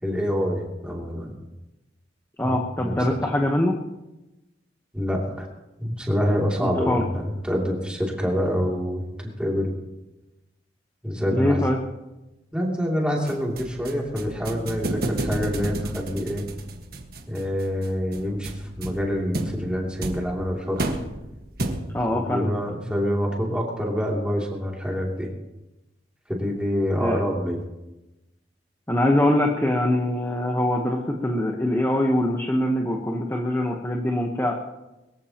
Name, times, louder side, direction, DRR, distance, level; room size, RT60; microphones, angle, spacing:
voice 1, 0.0-1.3 2.4-2.9 4.9-5.5 5.8-9.7 11.0-11.6 12.5-16.5 17.3-20.8 22.1-25.3 26.3-27.6, equal, 5° right, -2 dB, 2.8 m, -26 dB
voice 2, 2.4-3.7 6.6-7.0 11.3-11.8 21.9-22.5 27.0-27.2 28.9-34.5, left 1 dB, 15° left, 0 dB, 1.1 m, -23 dB
sound 1, 13.3-22.1, right 1 dB, 55° right, 1.5 m, -32 dB
22.5 x 14.5 x 3.0 m, 1.0 s
head